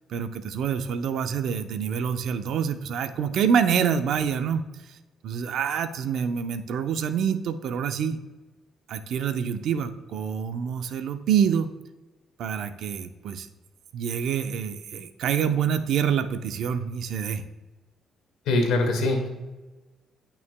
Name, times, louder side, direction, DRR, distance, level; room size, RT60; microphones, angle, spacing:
voice 1, 0.1-4.6 4.9-5.0 5.2-8.2 8.9-11.7 12.4-13.5 13.9-17.4, right 7 dB, 75° right, 9 dB, 0.6 m, -26 dB
voice 2, 18.5-19.3, left 2 dB, 90° left, 3 dB, 1.8 m, -22 dB
16.0 x 5.8 x 2.2 m, 1.2 s
cardioid pair, 90°, 0 cm